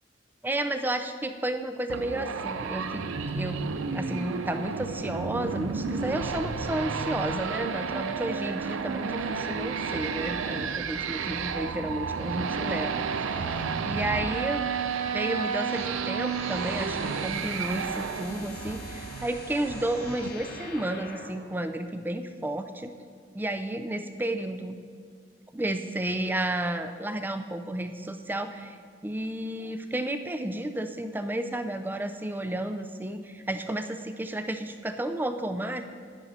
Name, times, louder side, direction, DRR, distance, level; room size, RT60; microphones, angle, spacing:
voice 1, 0.4-3.0 3.3-3.7 3.9-22.9 23.3-24.8 25.5-28.8 29.0-35.8, right 1 dB, 10° right, 8 dB, 0.3 m, -32 dB
sound 1, 1.9-20.3, right 5 dB, 90° right, 0.5 m, -32 dB
sound 2, 15.1-21.5, left 2 dB, 50° left, 1.0 m, -44 dB
10.0 x 9.8 x 4.2 m, 2.1 s
head